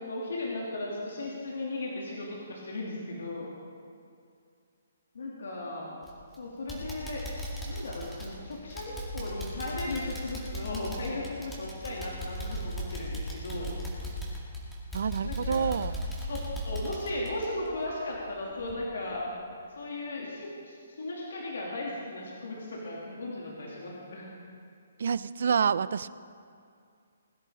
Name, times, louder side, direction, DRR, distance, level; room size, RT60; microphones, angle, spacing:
voice 1, 0.0-3.5 5.1-5.9 6.4-7.2 7.6-13.7 15.2-15.7 16.3-16.4 16.6-19.2 19.8-24.3, left 2 dB, 80° left, -4 dB, 2.7 m, -36 dB
sound 1, 6.0-6.3 6.7-18.3 18.6-18.7 19.2-19.3, equal, 5° left, 2.1 m, -37 dB
voice 2, 14.9-16.0 25.0-26.1, right 6 dB, 65° right, 17 dB, 0.4 m, -28 dB
20.5 x 10.5 x 3.8 m, 2.3 s
hypercardioid pair, 165°, 0 cm